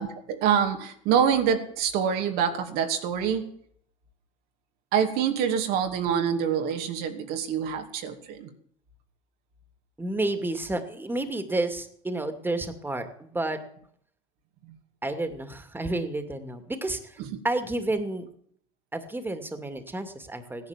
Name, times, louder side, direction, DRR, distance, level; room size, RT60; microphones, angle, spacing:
voice 1, 0.0-3.5 4.9-8.5, right 8 dB, 65° right, 5 dB, 2.4 m, -26 dB
voice 2, 10.0-13.6 15.0-17.2 17.4-18.3 18.9-20.7, right 2 dB, 10° right, 8 dB, 2.5 m, -30 dB
17.0 x 10.5 x 7.4 m, 0.64 s
hypercardioid pair, 75°, 17 cm